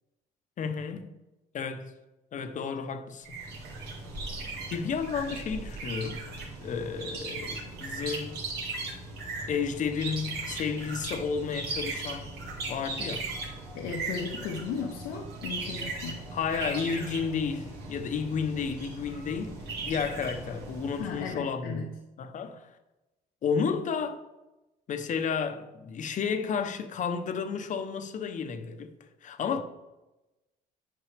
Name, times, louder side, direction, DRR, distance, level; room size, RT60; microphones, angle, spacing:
voice 1, 0.6-1.1 1.5-1.9 2.3-3.3 4.7-6.2 6.6-8.4 9.5-12.3 12.7-13.3 16.3-21.9 22.2-22.7 23.4-24.2 24.9-28.9 29.2-29.6, left 6 dB, 50° left, 0.8 m, -32 dB
sound 1, 3.2-21.3, right 3 dB, 75° right, 2.0 m, -38 dB
voice 2, 13.7-16.2 20.9-21.9 29.5-29.6, left 5 dB, 85° left, 0.8 m, -36 dB
9.1 x 6.1 x 3.3 m
cardioid pair, 110°, 17 cm